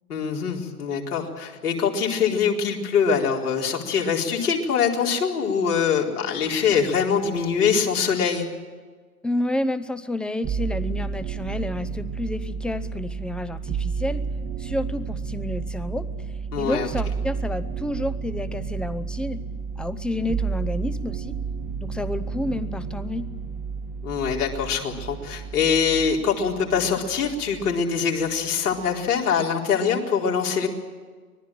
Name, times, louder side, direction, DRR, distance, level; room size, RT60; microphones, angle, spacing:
voice 1, 0.1-8.5 16.5-16.9 24.0-30.7, left 6 dB, 80° left, -1 dB, 4.4 m, -23 dB
voice 2, 9.2-14.2 14.6-16.1 16.6-19.4 19.8-21.4 21.8-23.3, left 1 dB, ahead, 12 dB, 0.6 m, -30 dB
sound 1, 10.4-27.9 28.2-29.0, right 5 dB, 20° right, 1.2 m, -31 dB
25.0 x 19.0 x 7.7 m, 1.5 s
hypercardioid pair, 115°, 45 cm